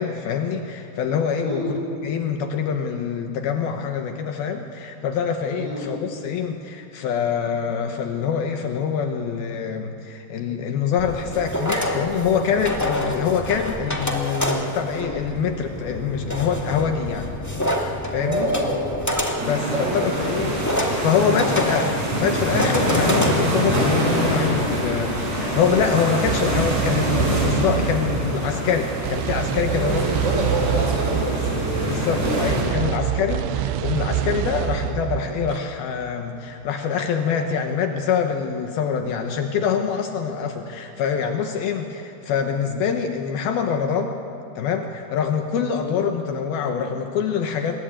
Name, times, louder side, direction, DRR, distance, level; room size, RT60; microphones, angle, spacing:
voice 1, 0.0-17.3 18.1-18.5 19.4-19.7 19.9-20.5 21.0-30.0 31.9-44.2 44.6-47.8, left 7 dB, 70° left, 5 dB, 2.8 m, -25 dB
voice 2, 1.4-1.7 5.5-5.9 18.2-18.9 19.1-19.4 19.7-20.1 20.5-20.6 21.2-21.5 29.7-32.9 45.6-45.9, right 1 dB, 25° right, -1 dB, 6.5 m, -28 dB
sound 1, 11.0-26.0, left 1 dB, 20° left, 0.4 m, -28 dB
sound 2, 19.4-32.6, right 1 dB, 40° right, 7.3 m, -25 dB
sound 3, 26.3-35.6, right 10 dB, 80° right, 2.8 m, -27 dB
26.5 x 22.5 x 8.8 m, 2.8 s
omnidirectional pair, 4.8 m